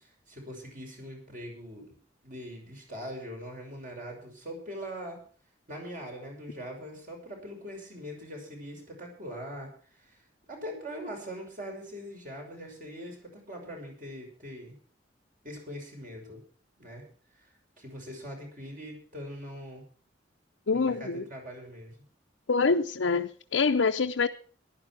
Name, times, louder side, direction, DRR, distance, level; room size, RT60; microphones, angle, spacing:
voice 1, 0.0-1.9 2.2-5.2 5.7-9.7 10.0-10.2 10.5-14.8 15.4-16.4 16.8-17.0 17.3-17.5 17.8-19.8 20.7-21.9, equal, 45° right, 6.2 m, -42 dB
voice 2, 20.7-21.2 22.5-24.3, left 4 dB, 85° left, 0.7 m, -25 dB
14.5 x 11.5 x 6.0 m
head